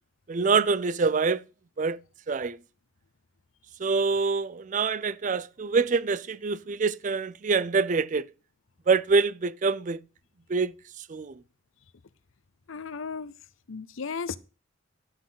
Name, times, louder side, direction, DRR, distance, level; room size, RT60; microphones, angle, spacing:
voice 1, 0.3-1.4 1.8-2.0 2.3-2.6 3.8-8.3 8.9-10.0 10.5-10.7 11.1-11.3, right 4 dB, 40° right, 0.4 m, -25 dB
voice 2, 12.7-13.3 13.7-14.4, left 5 dB, 90° left, 0.6 m, -35 dB
11.5 x 6.1 x 5.7 m
head